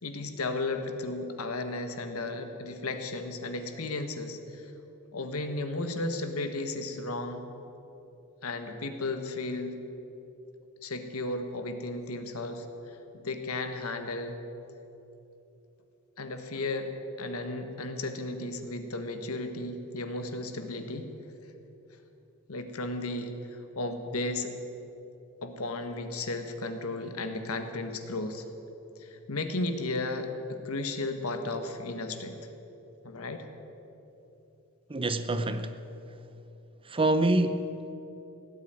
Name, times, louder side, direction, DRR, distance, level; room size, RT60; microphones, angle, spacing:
voice 1, 0.0-4.7 5.1-7.4 8.4-9.8 10.8-14.4 16.2-16.9 17.2-21.1 22.5-24.5 25.4-28.4 29.0-32.4 33.0-33.5, left 2 dB, 80° left, 1.5 m, -34 dB
voice 2, 34.9-35.8 36.8-37.9, right 2 dB, 25° right, 0.7 m, -27 dB
17.5 x 8.2 x 9.4 m
head